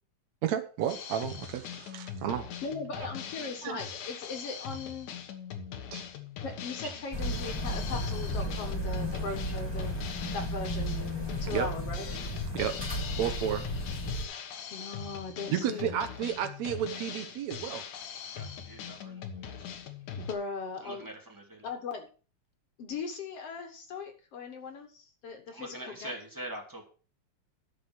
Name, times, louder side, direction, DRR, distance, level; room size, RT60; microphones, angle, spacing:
voice 1, 0.4-2.5 3.6-3.8 5.9-6.0 11.4-11.7 12.5-12.8 13.2-13.7 15.5-17.8, right 10 dB, 75° right, 9 dB, 2.1 m, -32 dB
Drum kit, 0.9-20.3, left 7 dB, 85° left, 2.8 m, -41 dB
voice 2, 2.6-5.1 6.4-9.9 10.3-11.0 11.4-12.1 14.7-16.0 20.2-21.1 21.6-22.1 22.8-26.1, left 4 dB, 55° left, 5 dB, 2.4 m, -39 dB
sound 1, 7.1-14.2, equal, 10° left, 2.3 m, -34 dB
voice 3, 18.3-19.1 20.8-21.1 21.5-21.6 25.5-26.8, right 1 dB, 5° right, 1 dB, 2.1 m, -42 dB
11.5 x 6.8 x 5.9 m, 0.37 s
omnidirectional pair, 3.4 m